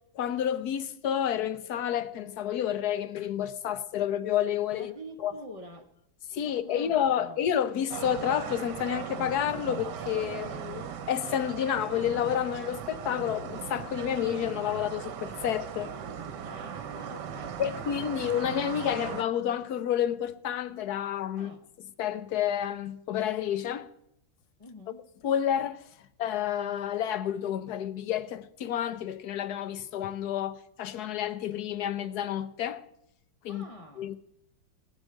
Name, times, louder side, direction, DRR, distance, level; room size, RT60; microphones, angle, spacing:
voice 1, 0.1-4.9 5.2-5.3 6.3-15.9 17.6-21.5 22.0-23.9 25.2-25.8 26.2-32.8 33.4-33.6 34.0-34.2, left 10 dB, 60° left, 1.2 m, -30 dB
voice 2, 4.8-5.9 6.4-7.4 16.4-17.8 21.3-21.6 24.6-25.0 33.5-34.1, equal, 25° left, 0.8 m, -46 dB
sound 1, 7.9-19.2, right 8 dB, 65° right, 1.5 m, -38 dB
18.5 x 6.4 x 8.9 m
omnidirectional pair, 2.1 m